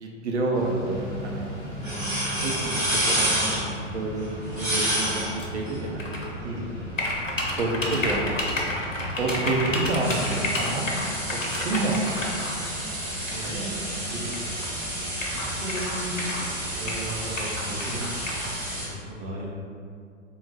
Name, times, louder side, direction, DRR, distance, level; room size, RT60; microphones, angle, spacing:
voice 1, 0.0-1.5 2.4-2.8 3.1-4.3 4.6-6.4 7.6-8.2 9.2-10.9 11.5-12.4 13.4-13.7, right 2 dB, 60° right, 0 dB, 0.7 m, -29 dB
Mechanical fan, 0.5-13.9, equal, 40° left, 0.7 m, -41 dB
sound 1, 0.8-18.9, equal, 90° right, 1.4 m, -31 dB
voice 2, 1.6-2.1 6.4-6.9 13.3-13.7 14.1-14.7 15.2-18.1 18.4-18.6 18.9-19.5, right 1 dB, 25° right, -4 dB, 0.5 m, -36 dB
sound 2, 6.0-6.3 7.0-12.5 13.3-13.4 14.3-14.4 14.6-14.7 15.2-16.5 16.9-18.5, left 1 dB, 85° left, 0.9 m, -30 dB
3.8 x 2.2 x 3.9 m, 2.3 s
figure-of-eight pair, 110°, 38 cm